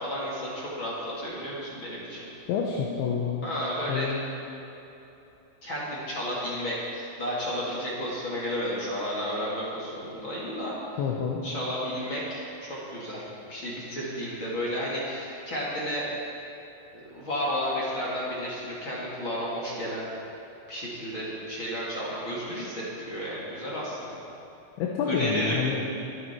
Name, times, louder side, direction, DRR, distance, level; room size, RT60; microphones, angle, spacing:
voice 1, 0.0-2.2 3.4-4.1 5.6-10.8 11.4-16.1 16.9-20.0 20.7-24.2 25.0-25.6, equal, 35° left, -6 dB, 2.5 m, -32 dB
voice 2, 2.5-3.5 3.9-4.2 11.0-11.4 24.8-25.9, left 6 dB, 80° left, -1 dB, 3.3 m, -28 dB
24.5 x 9.6 x 4.6 m, 2.9 s
omnidirectional pair, 5.4 m